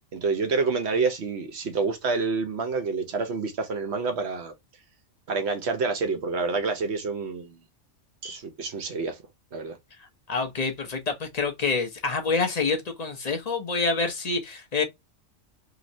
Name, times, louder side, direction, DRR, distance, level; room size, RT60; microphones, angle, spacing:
voice 1, 0.1-4.5 5.3-7.6 8.2-9.2 9.5-9.8, right 4 dB, 65° right, 1.0 m, -28 dB
voice 2, 10.3-14.8, left 4 dB, 40° left, 0.7 m, -27 dB
3.1 x 2.9 x 2.6 m
omnidirectional pair, 1.3 m